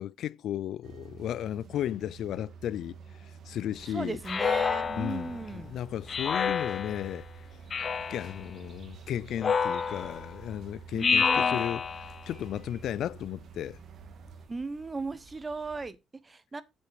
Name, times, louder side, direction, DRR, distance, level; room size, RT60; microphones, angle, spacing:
voice 1, 0.0-3.0 3.5-4.2 4.9-7.3 8.1-11.9 12.3-13.8, left 11 dB, 75° left, 0.4 m, -34 dB
sound 1, 0.8-14.5, right 6 dB, 70° right, 1.7 m, -49 dB
sound 2, 3.7-15.9, right 3 dB, 55° right, 2.7 m, -55 dB
voice 2, 3.9-5.8 10.9-11.6 14.5-16.6, right 3 dB, 25° right, 1.1 m, -36 dB
Speech synthesizer, 4.3-5.4 6.1-7.1 7.7-8.4 9.4-10.3 11.0-12.2, left 6 dB, 45° left, 0.7 m, -28 dB
7.5 x 7.2 x 4.9 m
cardioid pair, 90°, 0 cm